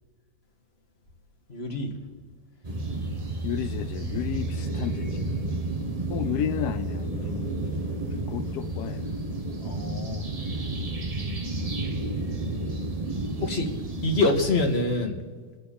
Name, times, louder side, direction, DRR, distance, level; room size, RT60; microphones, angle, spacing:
voice 1, 1.5-1.9 9.6-10.2 13.4-13.7 14.0-15.2, left 2 dB, 30° left, 2 dB, 2.0 m, -25 dB
sound 1, 2.6-14.8, right 2 dB, 30° right, 0.7 m, -31 dB
voice 2, 3.4-5.3 6.1-7.6 8.0-9.1, left 10 dB, 85° left, 11 dB, 0.8 m, -32 dB
28.0 x 9.6 x 4.2 m, 1.5 s
omnidirectional pair, 2.4 m